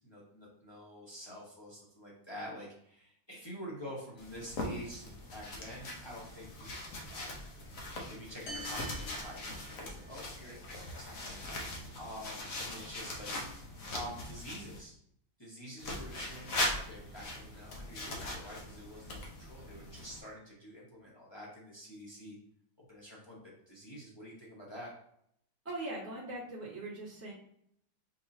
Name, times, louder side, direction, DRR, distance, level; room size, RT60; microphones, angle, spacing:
voice 1, 0.0-7.3 8.1-13.3 13.9-15.0 15.4-22.4 22.9-23.4 23.7-24.9, equal, 30° left, -6 dB, 0.4 m, -47 dB
sound 1, 4.2-14.8 15.8-20.2, left 1 dB, 55° left, 1.0 m, -41 dB
sound 2, 8.5-10.2, right 1 dB, 80° left, 2.0 m, -46 dB
voice 2, 25.6-27.3, right 2 dB, 10° right, -7 dB, 0.8 m, -40 dB
4.6 x 3.8 x 2.7 m, 0.71 s
omnidirectional pair, 2.3 m